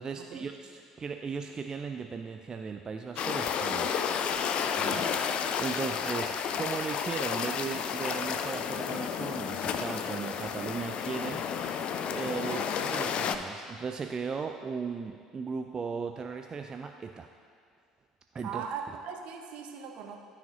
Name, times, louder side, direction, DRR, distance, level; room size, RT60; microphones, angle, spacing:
voice 1, 0.0-3.9 4.8-17.3 18.3-18.6, right 5 dB, 30° right, 5 dB, 0.3 m, -37 dB
sound 1, 3.2-13.4, left 7 dB, 50° left, 0.4 m, -31 dB
voice 2, 4.8-5.1 5.8-6.0 12.4-12.7 18.4-20.2, right 7 dB, 55° right, 4 dB, 0.7 m, -40 dB
12.0 x 4.9 x 2.8 m, 2.2 s
figure-of-eight pair, 60°, 2 cm